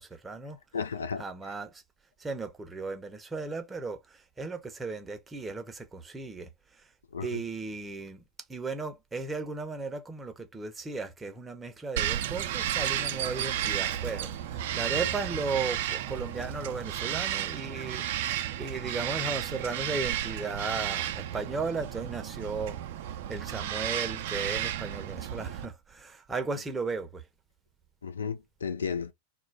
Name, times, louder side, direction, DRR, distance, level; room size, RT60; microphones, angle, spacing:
voice 1, 0.0-0.6 1.2-1.8 2.2-6.8 7.2-8.2 8.5-22.8 23.3-27.2, right 4 dB, 15° right, 0.7 m, -36 dB
voice 2, 0.7-1.2 7.1-7.4 28.0-29.1, left 6 dB, 70° left, 0.3 m, -33 dB
Bird vocalization bird call bird song, 12.0-25.7, right 11 dB, 55° right, 0.4 m, -33 dB
2.3 x 2.2 x 3.3 m
figure-of-eight pair, 90°, 0 cm